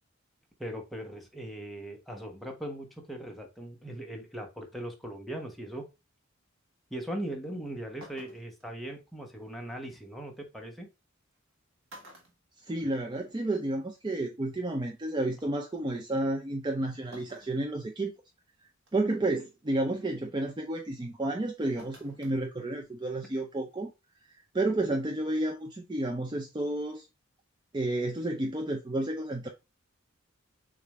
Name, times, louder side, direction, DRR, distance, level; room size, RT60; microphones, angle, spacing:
voice 1, 0.6-5.8 6.9-10.9, right 1 dB, ahead, 1.0 m, -39 dB
sound 1, 7.5-7.6 8.0-8.7 10.3-10.4 11.3-11.5 11.9-13.3 13.6-13.7 14.9-15.0 17.1-17.6 18.2-18.3 18.9-19.2 21.8-22.4 22.7-22.8, equal, 70° right, 1.3 m, -52 dB
voice 2, 12.7-18.1 18.9-23.9 24.5-27.1 27.7-29.5, right 2 dB, 20° right, 0.5 m, -31 dB
6.7 x 2.6 x 3.0 m
head